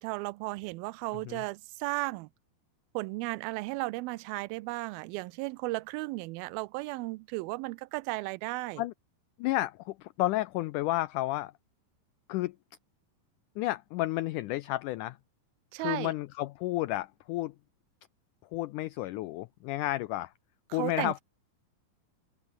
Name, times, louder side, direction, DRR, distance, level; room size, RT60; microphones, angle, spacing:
voice 1, 0.0-2.3 2.9-8.8 15.7-16.1 20.7-21.1, right 22 dB, 85° right, 2.4 m, -35 dB
voice 2, 9.4-11.5 12.3-12.5 13.6-15.2 15.8-17.5 18.5-20.3 20.7-21.2, left 17 dB, 85° left, 1.8 m, -31 dB
open air
omnidirectional pair, 4.3 m